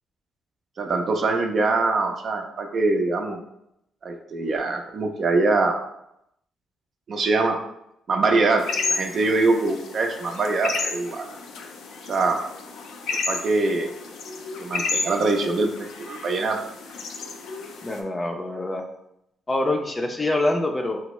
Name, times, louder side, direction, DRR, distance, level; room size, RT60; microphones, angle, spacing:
voice 1, 0.8-3.4 4.0-5.8 7.1-7.6 8.1-11.3 12.0-12.4 13.3-13.9 14.6-15.7 16.0-16.6, right 3 dB, 50° right, 3 dB, 0.5 m, -23 dB
sound 1, 8.6-18.0, left 4 dB, 80° left, 0.4 m, -32 dB
voice 2, 17.8-18.8 19.5-21.0, left 2 dB, 20° left, 2 dB, 0.5 m, -25 dB
4.4 x 2.0 x 3.0 m, 0.80 s
cardioid pair, 90°, 0 cm